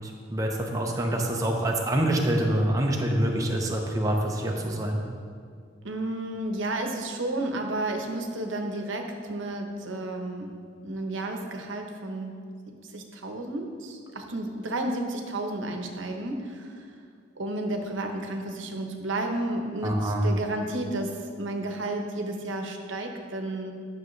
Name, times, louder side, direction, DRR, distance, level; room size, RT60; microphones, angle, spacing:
voice 1, 0.3-5.0 19.8-20.3, right 1 dB, 15° right, 0 dB, 0.6 m, -26 dB
voice 2, 5.8-10.5 10.8-12.3 12.7-16.8 17.4-23.7, right 2 dB, 75° right, 3 dB, 0.9 m, -32 dB
11.0 x 6.4 x 3.1 m, 2.1 s
head